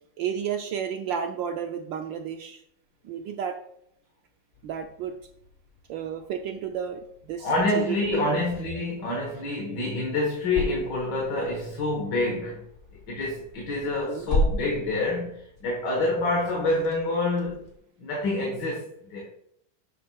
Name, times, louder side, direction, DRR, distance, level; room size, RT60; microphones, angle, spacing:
voice 1, 0.2-2.6 3.0-3.6 4.6-5.2 5.9-7.0 7.3-8.4 14.1-14.3, right 8 dB, 75° right, 1.2 m, -32 dB
sound 1, 4.5-17.8, left 1 dB, 40° left, 1.2 m, -36 dB
voice 2, 7.4-12.6 13.1-17.6 18.0-19.3, left 2 dB, 55° left, 1.8 m, -27 dB
10.5 x 7.6 x 2.3 m
omnidirectional pair, 2.3 m